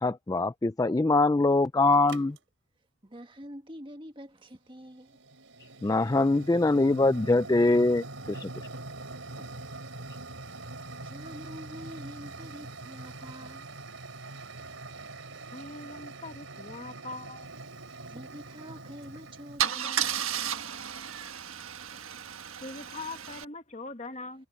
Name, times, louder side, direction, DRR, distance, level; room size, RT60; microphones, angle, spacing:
voice 1, 0.0-2.4 5.8-8.5, left 2 dB, 15° left, 0.4 m, -23 dB
sound 1, 2.1-2.4 4.7-19.6, right 2 dB, 70° right, 5.0 m, -43 dB
voice 2, 3.0-5.2 11.0-13.7 18.0-20.3, equal, 25° right, 1.8 m, -46 dB
voice 3, 15.5-17.5 22.6-24.5, left 3 dB, 35° left, 1.3 m, -41 dB
Car / Engine starting / Idling, 18.9-19.1 19.6-23.4, right 9 dB, 90° right, 1.4 m, -33 dB
head